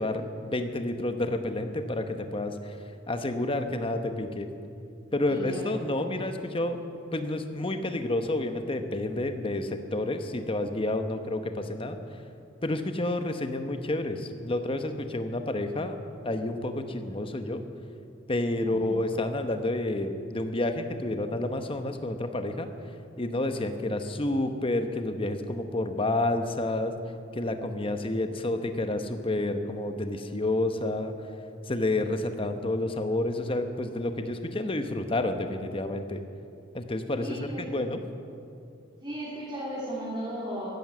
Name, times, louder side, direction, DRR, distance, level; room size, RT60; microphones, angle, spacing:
voice 1, 0.0-2.8 3.1-4.5 5.1-6.8 7.1-12.0 12.6-16.0 16.2-17.6 18.3-22.7 23.2-26.9 27.3-31.1 31.7-36.2 36.7-38.0, left 2 dB, 25° left, 7 dB, 1.0 m, -29 dB
voice 2, 5.2-5.8 18.6-18.7 37.1-37.7 39.0-40.7, right 1 dB, 20° right, -8 dB, 3.1 m, -35 dB
15.0 x 11.0 x 7.6 m, 2.5 s
head